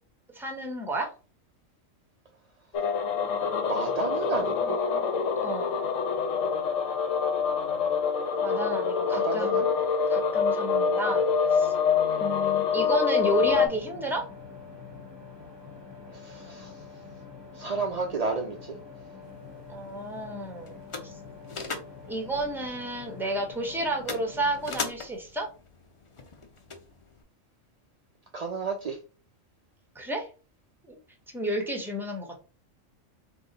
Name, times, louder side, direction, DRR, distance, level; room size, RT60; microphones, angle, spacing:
voice 1, 0.3-1.1 5.4-5.7 8.4-9.7 10.1-11.2 11.5-11.7 12.2-14.2 19.7-21.1 22.1-25.5 29.9-30.3 30.9-31.0 31.3-32.4, right 1 dB, ahead, 2 dB, 0.7 m, -31 dB
sound 1, 2.7-13.7, left 6 dB, 75° left, 1.0 m, -26 dB
voice 2, 3.7-4.8 9.1-9.7 16.2-16.7 17.6-18.8 28.3-29.0, right 4 dB, 75° right, 3 dB, 0.3 m, -31 dB
sound 2, 13.4-24.9, left 4 dB, 20° right, 1.0 m, -46 dB
sound 3, 19.2-27.2, left 4 dB, 45° left, 0.4 m, -41 dB
3.9 x 2.3 x 3.9 m, 0.35 s
omnidirectional pair, 1.4 m